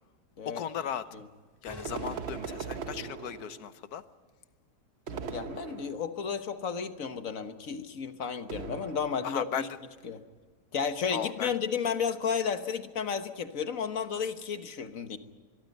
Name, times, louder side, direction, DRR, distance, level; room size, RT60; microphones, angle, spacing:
voice 1, 0.5-1.0 1.6-4.0 9.2-9.7 11.1-11.5, left 9 dB, 70° left, 13 dB, 1.4 m, -36 dB
sound 1, 1.7-3.1, left 1 dB, 15° left, 2.7 m, -46 dB
sound 2, 1.8-3.8 5.1-6.3 8.5-9.5, right 5 dB, 50° right, 0.9 m, -40 dB
voice 2, 5.1-9.7 10.0-10.2 10.7-15.2, left 6 dB, 55° left, 9 dB, 1.5 m, -33 dB
24.0 x 22.5 x 5.4 m, 1.4 s
omnidirectional pair, 1.7 m